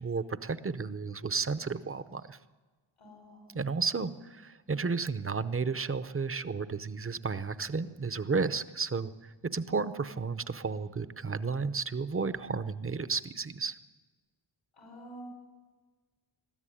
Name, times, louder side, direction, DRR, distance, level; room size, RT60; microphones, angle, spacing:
voice 1, 0.0-2.4 3.5-13.8, right 4 dB, 25° right, 13 dB, 0.7 m, -33 dB
voice 2, 3.0-3.5 14.8-15.2, right 1 dB, 85° left, 1 dB, 5.8 m, -49 dB
21.5 x 14.0 x 10.0 m, 1.3 s
wide cardioid pair, 140°, 49 cm